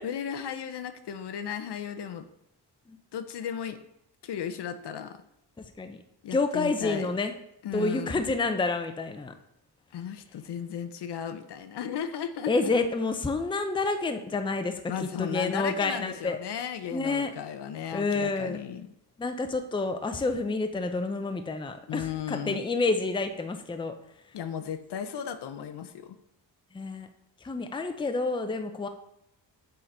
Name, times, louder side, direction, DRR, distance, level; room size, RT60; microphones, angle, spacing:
voice 1, 0.0-2.3 3.1-3.8 4.2-5.2 6.2-7.1 7.6-8.3 9.9-12.5 14.9-18.9 21.9-22.6 24.3-26.2, left 8 dB, 65° left, 10 dB, 0.7 m, -35 dB
voice 2, 6.3-7.3 7.7-9.3 12.5-14.8 15.2-16.4 16.9-17.3 17.9-18.6 19.2-23.9 26.7-27.1 27.4-28.9, left 3 dB, 10° left, 8 dB, 0.5 m, -29 dB
6.8 x 3.8 x 4.3 m, 0.80 s
cardioid pair, 85°, 44 cm